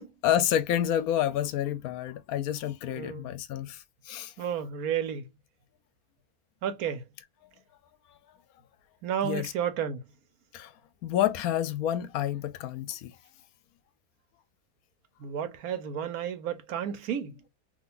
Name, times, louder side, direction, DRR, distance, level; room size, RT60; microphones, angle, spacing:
voice 1, 0.2-4.3 9.2-9.5 10.5-10.7 11.0-13.1, left 11 dB, 80° left, 1.0 m, -29 dB
voice 2, 3.0-3.3 4.4-5.3 6.6-7.0 9.0-10.0 15.2-17.4, right 8 dB, 75° right, 1.2 m, -32 dB
3.8 x 2.9 x 2.4 m
omnidirectional pair, 1.6 m